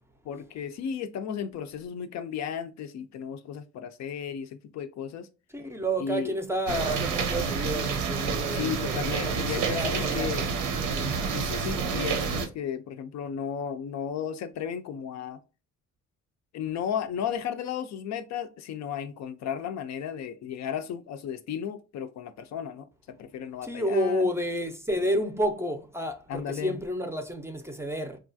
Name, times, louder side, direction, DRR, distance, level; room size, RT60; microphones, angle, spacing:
voice 1, 0.2-5.3 6.0-6.3 8.5-10.5 11.3-15.4 16.5-24.3 26.3-26.8, left 8 dB, 65° left, 0.4 m, -34 dB
voice 2, 5.5-10.3 10.8-11.1 23.6-28.2, equal, 10° right, 0.5 m, -30 dB
sound 1, 6.7-12.5, right 5 dB, 85° right, 0.7 m, -29 dB
3.1 x 2.3 x 2.5 m
cardioid pair, 90°, 30 cm